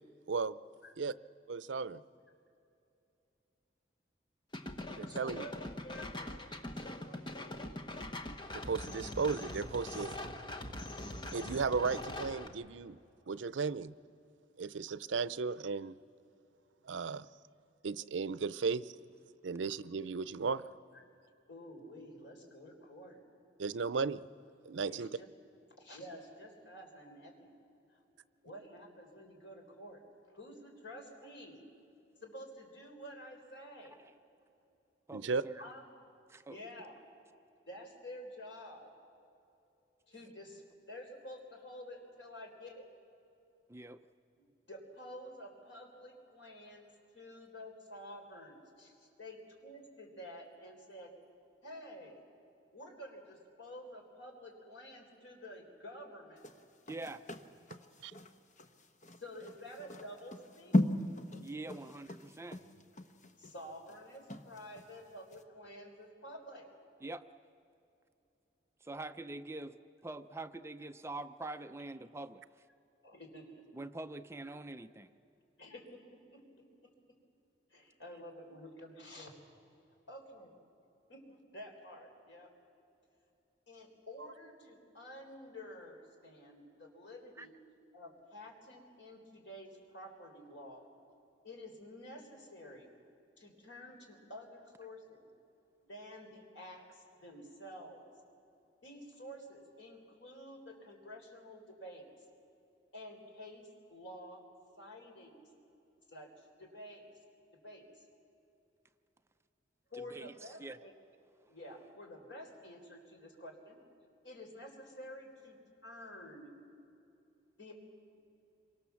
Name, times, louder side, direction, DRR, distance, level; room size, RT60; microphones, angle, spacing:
voice 1, 0.3-0.6 1.0-1.1 1.5-2.0 4.9-5.5 8.5-10.1 11.3-13.0 13.3-13.9 14.6-15.9 16.8-17.3 17.8-18.9 19.4-20.6 23.6-24.2 24.7-25.1 35.1-35.4, right 5 dB, 90° right, 17 dB, 0.5 m, -35 dB
sound 1, 4.5-12.5, left 1 dB, 25° left, 1.2 m, -43 dB
voice 2, 5.1-7.9 20.9-23.2 24.9-25.3 25.7-27.5 27.9-28.0 28.4-30.0 30.3-31.6 32.2-33.9 35.6-35.8 36.5-37.0 37.7-38.9 40.1-42.8 44.4-46.9 47.1-51.1 51.6-52.2 52.7-56.5 59.2-60.7 63.4-66.7 73.0-73.6 75.6-76.4 77.7-79.4 80.1-80.5 81.1-82.5 83.7-87.6 87.9-90.8 91.4-92.9 93.4-95.3 95.8-98.0 98.8-102.0 102.9-104.4 104.8-105.4 106.1-107.1 107.5-108.0 109.9-110.9 111.5-113.8 114.2-116.5 117.6-117.7, equal, 90° left, 2 dB, 4.2 m, -50 dB
voice 3, 35.1-35.6 36.3-36.6 43.7-44.0 56.9-57.2 61.4-62.6 67.0-67.2 68.8-69.7 70.0-72.4 73.7-75.1 87.4-87.5 109.9-110.8, right 2 dB, 15° right, 9 dB, 0.5 m, -44 dB
sound 2, 56.4-64.9 65.3-65.4, left 1 dB, 45° left, 1.1 m, -37 dB
27.0 x 24.0 x 7.1 m, 2.8 s
head